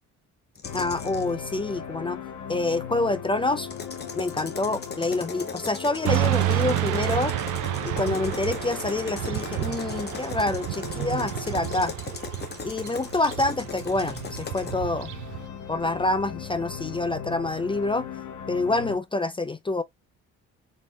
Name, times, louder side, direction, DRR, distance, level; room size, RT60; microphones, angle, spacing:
sound 1, 0.6-19.0, left 7 dB, 75° left, 1.0 m, -39 dB
sound 2, 0.6-1.3 3.6-14.8, left 5 dB, 35° left, 1.0 m, -39 dB
voice 1, 0.7-2.2 2.5-3.7 4.1-7.3 7.8-11.9 12.6-15.1 15.7-18.1 18.5-19.8, left 2 dB, 15° left, 0.4 m, -27 dB
Motorcycle / Traffic noise roadway noise, 6.0-15.4, right 15 dB, 85° right, 0.5 m, -30 dB
4.1 x 3.6 x 2.3 m
cardioid pair, 90°, 30 cm